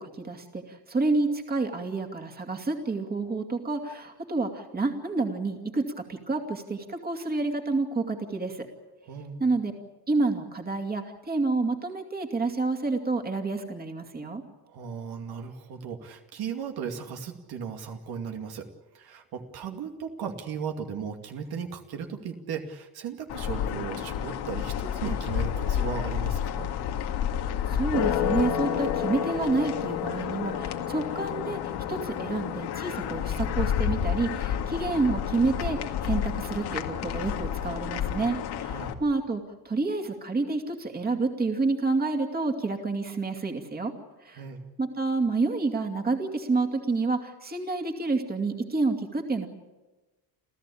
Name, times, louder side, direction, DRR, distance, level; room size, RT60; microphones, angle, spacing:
voice 1, 0.0-8.7 9.4-9.7 10.1-14.4 27.7-43.9 44.2-44.4 44.8-49.5, right 3 dB, 25° right, 4 dB, 2.5 m, -29 dB
voice 2, 9.1-9.4 14.7-18.7 18.9-26.7 38.6-39.0 44.4-44.6, right 6 dB, 70° right, 4 dB, 2.5 m, -36 dB
sound 1, 23.3-38.9, left 9 dB, 75° left, 2.1 m, -30 dB
29.0 x 14.5 x 8.6 m, 1.2 s
cardioid pair, 145°, 39 cm